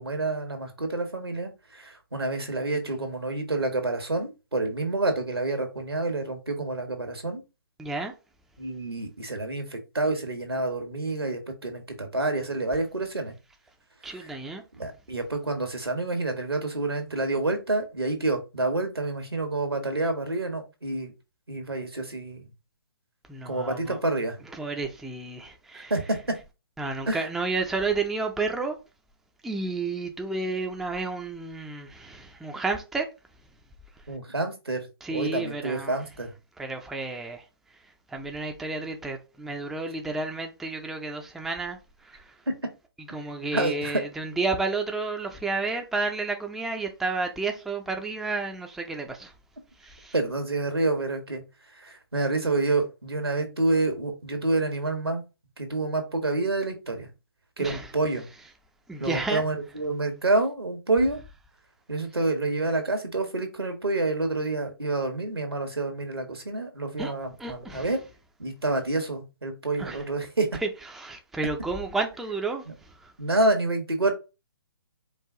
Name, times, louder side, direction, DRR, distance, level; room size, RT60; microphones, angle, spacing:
voice 1, 0.0-7.4 8.6-13.3 14.1-14.3 14.8-21.1 21.5-22.5 23.4-24.4 25.7-26.2 27.1-27.2 34.1-36.3 42.5-42.6 43.5-44.0 50.1-51.4 51.7-55.2 55.6-57.1 57.6-58.3 59.0-61.2 61.9-68.0 68.4-70.5 72.7-72.8 73.2-74.1, right 2 dB, 90° right, 1.3 m, -28 dB
voice 2, 7.8-8.1 14.0-14.6 23.3-24.0 24.5-25.9 26.8-28.8 29.4-33.1 33.9-34.1 35.0-36.0 36.6-42.4 43.1-49.3 49.8-50.1 57.6-57.9 58.9-59.4 67.0-67.1 67.4-67.9 69.8-70.1 70.6-73.1, right 3 dB, ahead, 0.4 m, -31 dB
4.7 x 2.4 x 3.5 m
figure-of-eight pair, 135°, 13 cm